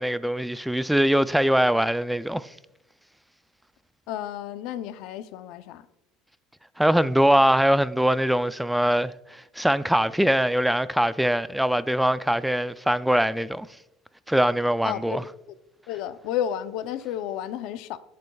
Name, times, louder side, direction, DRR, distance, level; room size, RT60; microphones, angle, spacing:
voice 1, 0.0-2.5 6.8-13.7 14.3-15.2, equal, ahead, 0.3 m, -22 dB
voice 2, 4.1-5.8 14.8-15.3 15.9-18.0, left 10 dB, 65° left, 0.6 m, -32 dB
15.0 x 7.6 x 2.3 m
cardioid pair, 140°, 0 cm